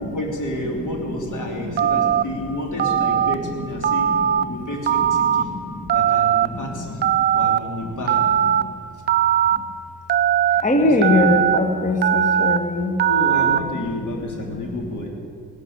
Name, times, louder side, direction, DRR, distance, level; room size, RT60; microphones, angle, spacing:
voice 1, 0.0-4.1 4.4-5.5 5.9-7.0 7.3-8.2 10.5-11.1 13.0-15.1, left 1 dB, 40° left, 2 dB, 3.1 m, -30 dB
voice 2, 1.4-2.2 4.1-4.2 4.4-4.6 5.2-6.0 6.4-7.0 7.8-7.9 8.5-8.7 9.5-9.6 10.6-13.0 13.7-13.8 14.5-14.6 15.0-15.1, left 2 dB, 15° left, 6 dB, 1.5 m, -23 dB
Telephone, 1.8-2.2 2.8-3.3 3.8-4.4 4.9-5.4 5.9-6.5 7.0-7.6 8.1-8.6 9.1-9.6 10.1-10.6 11.0-11.6 12.0-12.6 13.0-13.6, right 10 dB, 25° right, 0.4 m, -19 dB
17.5 x 6.6 x 9.8 m, 2.4 s
figure-of-eight pair, 45°, 48 cm